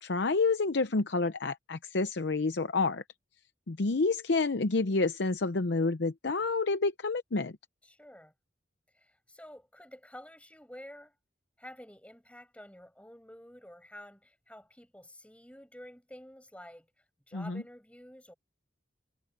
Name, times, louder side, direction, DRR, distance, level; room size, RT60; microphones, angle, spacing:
voice 1, 0.0-3.0 3.7-7.6 17.3-17.6, left 3 dB, 65° left, 0.7 m, -29 dB
voice 2, 7.8-8.3 8.9-11.2 11.6-18.3, left 1 dB, 5° left, 7.3 m, -50 dB
head